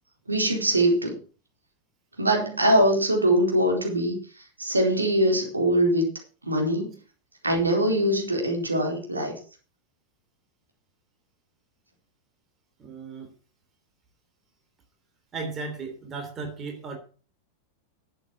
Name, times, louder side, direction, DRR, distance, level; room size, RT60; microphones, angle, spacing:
voice 1, 0.3-1.2 2.2-4.2 4.6-6.1 6.4-6.9 7.4-9.3, right 1 dB, 80° right, 1 dB, 4.2 m, -22 dB
voice 2, 12.8-13.3 15.3-17.0, right 4 dB, 25° right, 5 dB, 3.3 m, -35 dB
12.0 x 8.2 x 6.0 m, 0.38 s
figure-of-eight pair, 90°, 0 cm